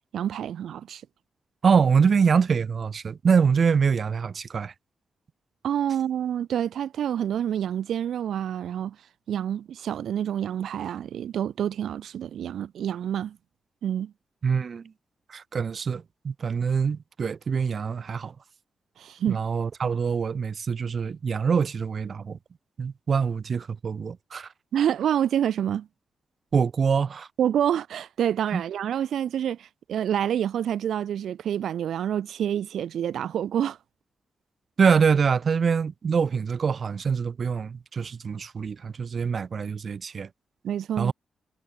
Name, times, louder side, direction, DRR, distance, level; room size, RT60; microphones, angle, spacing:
voice 1, 0.1-1.0 5.6-9.0 9.3-13.4 13.8-14.1 19.0-19.4 24.7-25.9 27.4-33.8 40.6-41.1, right 9 dB, 80° right, 1.5 m, -27 dB
voice 2, 1.6-4.7 14.4-14.9 15.3-18.3 19.3-22.4 22.8-24.5 26.5-27.3 28.5-28.6 34.8-40.3 41.0-41.1, right 6 dB, 40° right, 2.5 m, -24 dB
wide cardioid pair, 165°, 0 cm